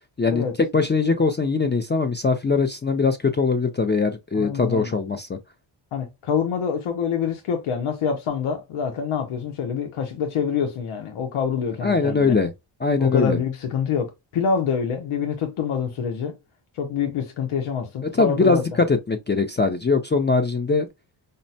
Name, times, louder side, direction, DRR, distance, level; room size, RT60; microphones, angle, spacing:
voice 1, 0.2-5.4 11.8-12.5 12.8-13.4 18.0-20.9, left 4 dB, 25° left, 0.5 m, -21 dB
voice 2, 4.3-5.0 5.9-12.3 13.0-16.3 16.7-18.6, left 7 dB, 80° left, 0.8 m, -26 dB
5.2 x 2.1 x 2.6 m
cardioid pair, 85°, 49 cm